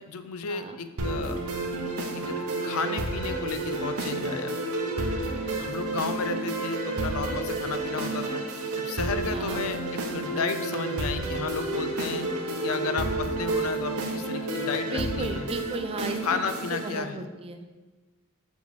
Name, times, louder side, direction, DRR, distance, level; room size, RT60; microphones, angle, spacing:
voice 1, 0.0-1.4 2.1-2.4 2.6-4.6 5.6-8.4 8.8-12.3 12.6-15.5 16.2-17.2, left 5 dB, 70° left, 10 dB, 0.5 m, -33 dB
sound 1, 1.0-17.0, right 2 dB, 75° right, 0.8 m, -30 dB
voice 2, 14.9-16.4 16.7-17.7, right 2 dB, 25° right, 7 dB, 0.4 m, -35 dB
6.5 x 5.2 x 3.2 m, 1.2 s
head